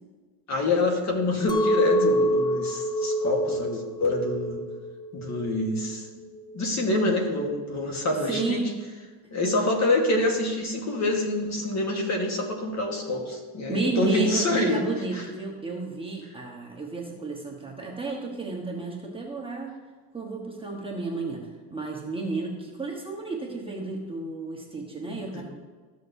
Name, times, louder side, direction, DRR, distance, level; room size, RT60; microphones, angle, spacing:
voice 1, 0.5-4.6 5.1-6.1 6.5-8.6 9.3-15.2 25.1-25.4, left 2 dB, 35° left, 2 dB, 1.5 m, -26 dB
Chink clink, 1.5-6.7, right 1 dB, 10° left, 0.4 m, -27 dB
voice 2, 8.3-8.7 13.7-19.7 20.1-25.4, right 3 dB, 10° right, -2 dB, 1.1 m, -32 dB
14.0 x 6.4 x 2.7 m, 1.4 s
cardioid pair, 125°, 49 cm